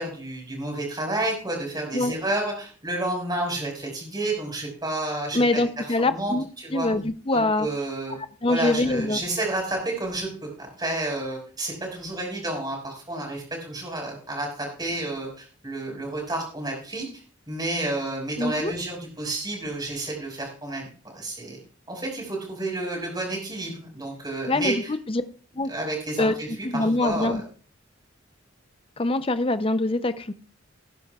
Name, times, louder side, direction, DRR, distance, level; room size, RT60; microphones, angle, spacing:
voice 1, 0.0-6.9 7.3-8.2 8.5-17.2 17.5-21.6 21.9-24.9 25.7-27.4, right 2 dB, 20° right, 1 dB, 5.1 m, -30 dB
voice 2, 5.3-7.7 8.4-9.2 18.4-18.7 24.5-25.2 25.5-25.7 26.2-26.3 26.6-27.4 29.0-30.3, left 2 dB, 25° left, 11 dB, 0.6 m, -24 dB
19.5 x 10.5 x 2.4 m, 0.40 s
head